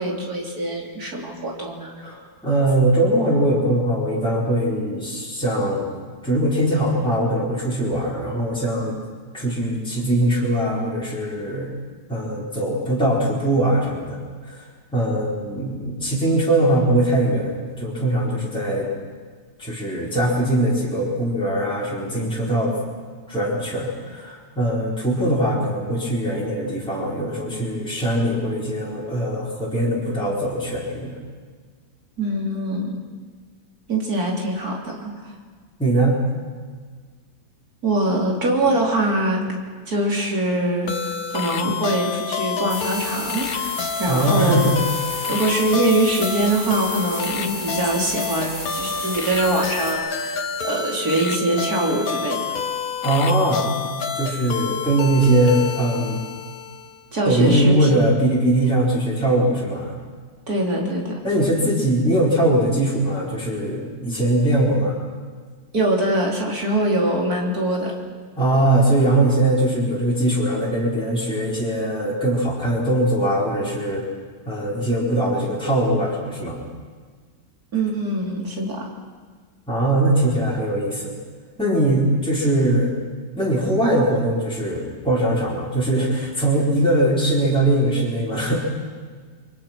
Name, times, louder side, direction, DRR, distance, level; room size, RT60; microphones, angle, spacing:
voice 1, 0.0-1.9 32.2-33.0 33.9-35.3 37.8-39.6 39.9-44.7 45.3-52.6 57.1-57.9 60.5-61.4 65.7-68.0 77.7-78.9, right 1 dB, 60° right, -1 dB, 4.3 m, -23 dB
voice 2, 2.0-5.9 6.2-9.0 9.3-11.7 12.1-14.2 14.4-14.6 14.9-18.9 19.6-22.7 23.3-31.2 35.8-36.2 44.1-44.8 45.1-45.3 53.0-56.2 57.3-59.9 61.2-65.0 68.4-74.0 74.4-76.6 79.7-81.1 81.6-83.0 83.4-88.5, right 1 dB, 5° left, -6 dB, 4.6 m, -21 dB
sound 1, 40.9-57.0, left 6 dB, 65° left, 1.6 m, -29 dB
sound 2, 42.7-49.9, right 1 dB, 80° right, 7.6 m, -33 dB
30.0 x 23.5 x 6.1 m, 1.5 s
omnidirectional pair, 1.8 m